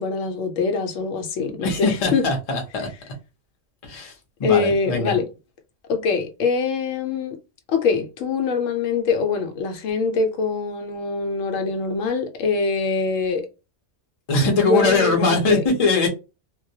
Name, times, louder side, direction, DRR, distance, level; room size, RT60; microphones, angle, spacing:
voice 1, 0.0-2.2 4.4-5.3 5.9-7.4 7.7-13.5 14.5-15.6, left 4 dB, 80° left, 0.9 m, -23 dB
voice 2, 1.6-2.9 3.8-4.1 4.4-5.2 14.3-16.1, left 3 dB, 40° left, 0.6 m, -21 dB
2.2 x 2.1 x 2.6 m
omnidirectional pair, 1.3 m